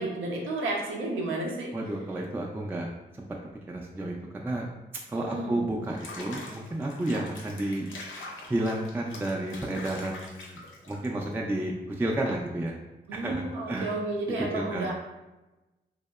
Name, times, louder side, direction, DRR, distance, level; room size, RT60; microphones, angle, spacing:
voice 1, 0.0-1.7 5.1-5.6 13.1-14.9, right 2 dB, 85° right, -1 dB, 0.6 m, -32 dB
voice 2, 1.7-2.9 3.2-3.3 3.7-4.7 5.1-7.9 8.2-12.8 13.1-14.0 14.5-14.9, right 1 dB, 10° right, -1 dB, 0.3 m, -31 dB
Water / Bathtub (filling or washing), 5.8-11.3, left 2 dB, 80° left, 0.5 m, -44 dB
2.8 x 2.0 x 2.2 m, 1.0 s
supercardioid pair, 45°, 20 cm